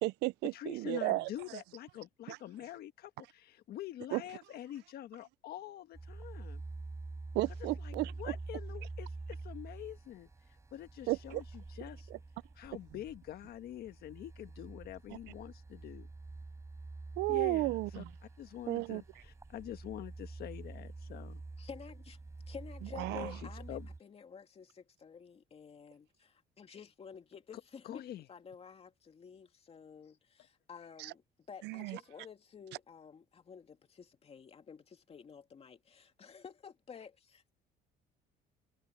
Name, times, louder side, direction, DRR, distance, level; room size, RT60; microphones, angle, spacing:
voice 1, 0.0-1.3 2.3-2.4 4.1-4.2 7.3-8.3 11.1-11.4 12.1-12.2 17.2-18.1 18.7-19.0 23.0-23.4 31.0-31.1 31.6-32.0, right 20 dB, 85° right, 0.5 m, -33 dB
voice 2, 0.5-6.6 7.8-10.3 10.7-12.1 12.6-16.1 17.3-18.0 18.4-21.4 23.1-23.9 27.8-28.2, left 12 dB, 65° left, 1.5 m, -46 dB
sound 1, 5.9-24.0, right 3 dB, 15° right, 4.5 m, -47 dB
voice 3, 21.6-22.2 22.5-37.5, left 6 dB, 35° left, 2.4 m, -51 dB
cardioid pair, 110°, 17 cm